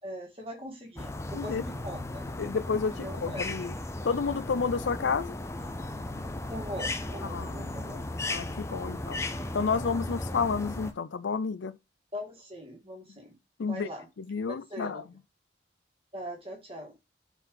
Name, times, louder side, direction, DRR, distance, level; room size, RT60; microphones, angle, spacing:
voice 1, 0.0-2.3 3.0-3.5 6.5-8.0 8.8-9.0 12.1-14.1 14.4-15.0 16.1-16.9, equal, 30° right, 2.0 m, -41 dB
sound 1, 1.0-10.9, left 2 dB, 15° left, 0.5 m, -36 dB
voice 2, 2.4-3.7 4.0-5.4 7.2-7.8 8.3-9.2 9.5-11.7 13.6-13.9 14.2-15.0, left 5 dB, 80° left, 0.5 m, -30 dB
5.4 x 4.5 x 3.9 m
head